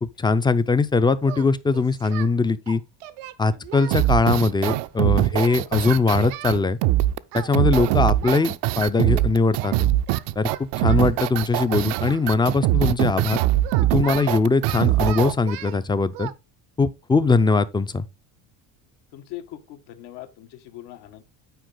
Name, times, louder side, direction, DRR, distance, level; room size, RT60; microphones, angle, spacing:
voice 1, 0.0-2.8 3.4-6.8 7.3-9.9 10.4-13.4 13.8-16.3 16.8-18.1, left 3 dB, 10° left, 0.4 m, -21 dB
Singing, 1.2-2.3 2.7-4.8 5.3-6.6 7.3-7.5 7.8-8.5 9.6-9.8 10.1-12.3 13.2-15.8 16.1-16.3, right 14 dB, 90° right, 1.0 m, -38 dB
sound 1, 3.9-15.3, right 15 dB, 70° right, 0.6 m, -22 dB
voice 2, 19.1-21.2, left 13 dB, 80° left, 1.5 m, -40 dB
9.3 x 4.6 x 3.8 m
cardioid pair, 120°, 43 cm